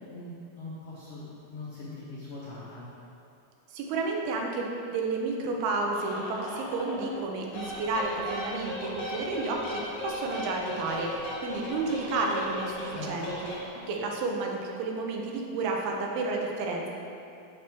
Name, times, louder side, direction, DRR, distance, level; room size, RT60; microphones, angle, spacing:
voice 1, 0.1-2.9 12.9-13.1, left 2 dB, 80° left, -8 dB, 1.4 m, -41 dB
voice 2, 3.7-13.5 13.9-16.9, right 3 dB, 85° right, 0 dB, 2.7 m, -31 dB
sound 1, 5.9-7.2 7.5-13.9, left 1 dB, 60° left, 2.6 m, -37 dB
7.9 x 5.8 x 3.4 m, 2.7 s
omnidirectional pair, 4.3 m